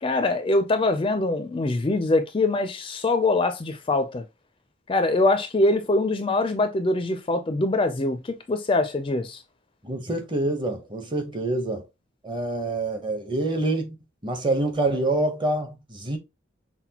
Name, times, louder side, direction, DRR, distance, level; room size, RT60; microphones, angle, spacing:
voice 1, 0.0-4.2 4.9-9.4, left 2 dB, 25° left, 0.4 m, -23 dB
voice 2, 9.8-11.9 12.2-14.0 14.2-16.2, right 2 dB, 25° right, 0.8 m, -26 dB
5.8 x 2.2 x 2.8 m
head